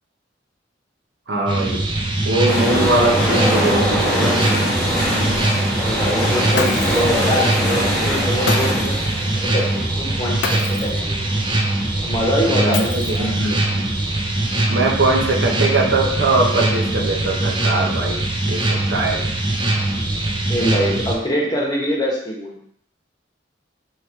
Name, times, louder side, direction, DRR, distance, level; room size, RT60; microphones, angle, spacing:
voice 1, 1.3-1.9 2.2-4.7 12.6-13.9 14.7-19.3, right 2 dB, 80° right, 0 dB, 0.8 m, -21 dB
sound 1, 1.5-21.1, right 2 dB, 25° right, 0.5 m, -22 dB
sound 2, 2.5-12.3 12.6-12.7, equal, 5° left, 1.3 m, -23 dB
voice 2, 5.7-8.9 9.4-11.3 12.0-13.3 20.5-22.6, equal, 20° left, -3 dB, 1.0 m, -24 dB
Shatter, 6.5-7.2 8.5-9.0 10.4-11.0 12.7-13.4, left 5 dB, 65° left, 0.4 m, -27 dB
3.2 x 2.9 x 4.4 m, 0.70 s
head